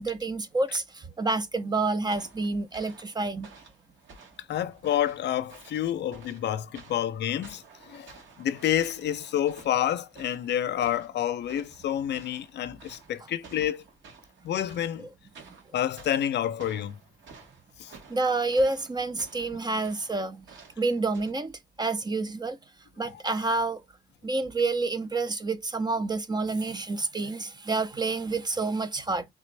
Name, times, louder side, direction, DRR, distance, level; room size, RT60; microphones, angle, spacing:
voice 1, 0.0-3.5 15.0-15.1 18.1-20.5 20.8-22.6 23.0-23.8 24.2-29.3, right 3 dB, 20° right, 0.5 m, -28 dB
sound 1, 2.1-21.3, right 5 dB, 70° right, 1.7 m, -53 dB
voice 2, 4.5-7.6 7.9-8.1 8.4-13.8 14.4-15.1 15.7-17.0 17.8-17.9, left 11 dB, 60° left, 0.4 m, -28 dB
3.3 x 2.5 x 3.2 m
cardioid pair, 90°, 20 cm